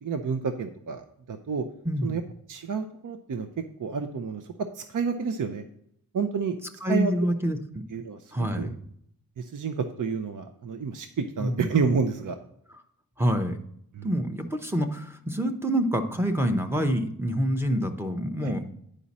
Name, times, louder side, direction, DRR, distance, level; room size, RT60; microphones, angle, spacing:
voice 1, 0.0-1.6 2.0-2.2 2.5-3.5 3.8-4.4 4.7-5.6 6.1-6.6 6.9-7.1 7.9-8.7 9.4-12.4 13.9-14.1 18.4-18.5, right 5 dB, 60° right, 7 dB, 0.6 m, -29 dB
voice 2, 6.8-7.8 8.3-8.7 11.4-11.7 13.2-13.6 14.0-18.7, equal, 5° right, 5 dB, 0.7 m, -27 dB
10.0 x 5.1 x 4.1 m, 0.71 s
wide cardioid pair, 120°, 36 cm